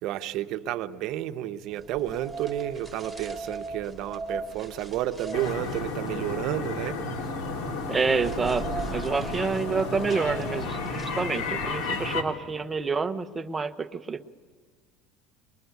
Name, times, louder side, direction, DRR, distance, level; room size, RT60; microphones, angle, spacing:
voice 1, 0.0-7.0, right 12 dB, 55° right, 0.9 m, -31 dB
sound 1, 1.8-11.8, right 3 dB, ahead, 2.8 m, -40 dB
sound 2, 5.3-12.2, left 3 dB, 60° left, 3.2 m, -32 dB
voice 2, 7.9-14.3, right 4 dB, 15° right, 0.8 m, -28 dB
22.0 x 21.5 x 9.4 m
cardioid pair, 150°, 0 cm